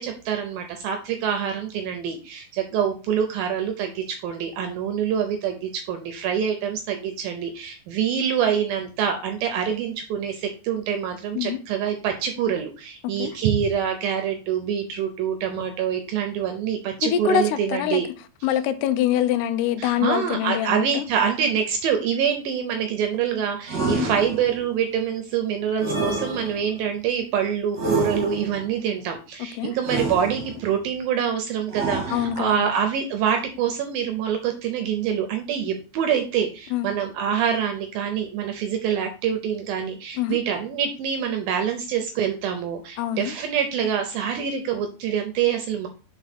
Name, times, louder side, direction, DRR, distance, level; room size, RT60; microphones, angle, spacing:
voice 1, 0.0-18.1 19.8-45.9, right 8 dB, 80° right, 2.2 m, -25 dB
voice 2, 13.0-13.4 17.0-18.0 18.4-21.1 23.9-24.1 29.4-29.8 32.1-32.7 36.7-36.9 40.2-40.4 43.0-43.3, left 10 dB, 85° left, 2.7 m, -25 dB
sound 1, 23.7-24.7 25.8-26.9 27.7-28.7 29.8-30.7 31.7-32.7, right 3 dB, 40° right, 1.8 m, -29 dB
5.7 x 4.6 x 4.1 m
omnidirectional pair, 4.7 m